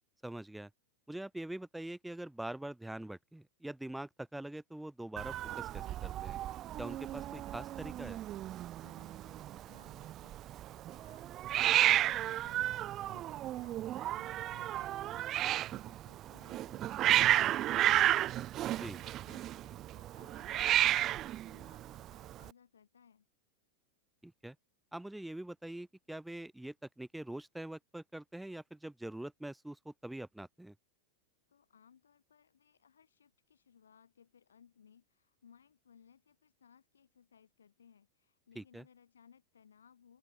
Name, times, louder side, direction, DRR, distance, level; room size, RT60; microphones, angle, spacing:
voice 1, 0.2-0.7 1.1-6.4 6.8-8.2 18.8-19.0 24.2-24.6 24.9-30.7 38.6-38.8, right 1 dB, 5° right, 0.8 m, -44 dB
Hiss, 5.2-22.5, right 13 dB, 30° right, 0.4 m, -32 dB
voice 2, 8.8-11.3 11.6-23.3 31.5-40.2, left 7 dB, 70° left, 7.6 m, -64 dB
open air
figure-of-eight pair, 90°, 0 cm